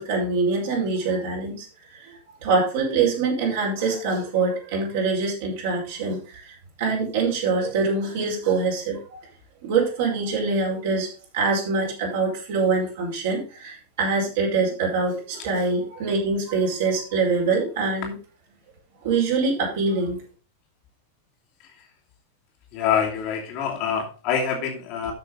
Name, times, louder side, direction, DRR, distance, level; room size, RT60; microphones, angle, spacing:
voice 1, 0.0-1.7 2.0-2.1 2.4-9.2 9.6-11.1 11.3-18.1 19.0-20.2, right 4 dB, 55° right, -2 dB, 5.1 m, -24 dB
voice 2, 22.7-25.1, left 7 dB, 40° left, 0 dB, 2.8 m, -25 dB
13.5 x 6.5 x 3.9 m, 0.35 s
figure-of-eight pair, 90°, 0 cm